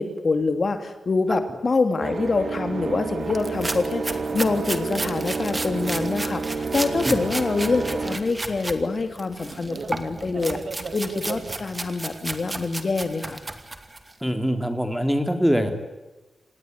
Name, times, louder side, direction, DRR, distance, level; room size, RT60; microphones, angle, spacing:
voice 1, 0.0-10.6 10.9-13.4, left 3 dB, 45° left, 8 dB, 2.7 m, -25 dB
sound 1, 2.0-11.6, right 4 dB, 55° right, 2.5 m, -31 dB
sound 2, 3.3-8.8 9.2-14.1, right 2 dB, 25° right, 2.5 m, -33 dB
voice 2, 14.2-15.7, equal, ahead, 7 dB, 3.4 m, -23 dB
27.5 x 18.5 x 9.8 m, 1.1 s
wide cardioid pair, 90°, 0 cm